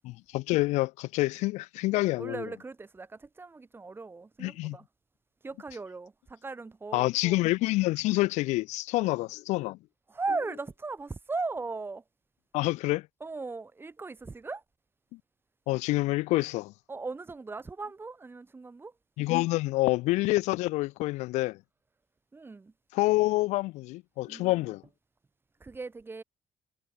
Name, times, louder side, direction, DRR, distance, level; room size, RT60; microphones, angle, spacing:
voice 1, 0.0-2.4 4.4-4.8 6.9-9.8 12.5-13.1 15.7-16.7 19.2-21.6 22.9-24.8, left 20 dB, 85° left, 1.9 m, -27 dB
voice 2, 2.2-4.9 5.4-7.4 9.0-9.1 10.1-12.0 13.2-14.6 16.9-19.0 22.3-22.7 24.3-24.7 25.6-26.2, right 3 dB, 20° right, 6.4 m, -38 dB
cardioid pair, 120°, 12 cm